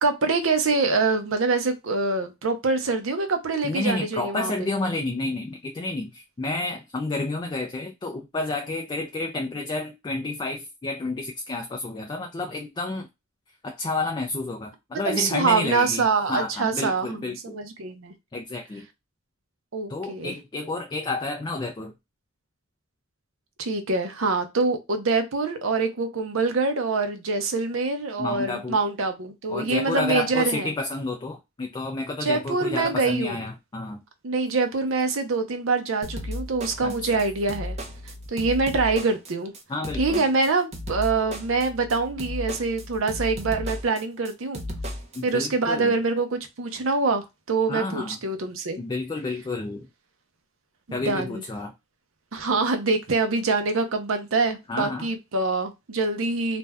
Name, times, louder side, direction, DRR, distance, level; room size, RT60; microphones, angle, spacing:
voice 1, 0.0-4.7 15.0-18.1 19.7-20.3 23.6-30.7 32.2-33.4 34.2-37.8 38.3-39.5 40.0-44.6 45.2-48.8 50.9-51.4 52.3-56.6, right 3 dB, 75° right, 0.7 m, -25 dB
voice 2, 3.6-13.1 13.6-17.6 18.3-18.9 19.9-21.9 28.2-28.8 29.5-34.0 36.8-37.2 39.7-40.2 45.1-46.0 47.7-48.2 48.8-49.9 50.9-51.7 54.7-55.1, left 2 dB, 20° left, 0.3 m, -30 dB
sound 1, 36.0-45.2, left 1 dB, 35° right, 0.7 m, -35 dB
2.5 x 2.2 x 3.3 m
head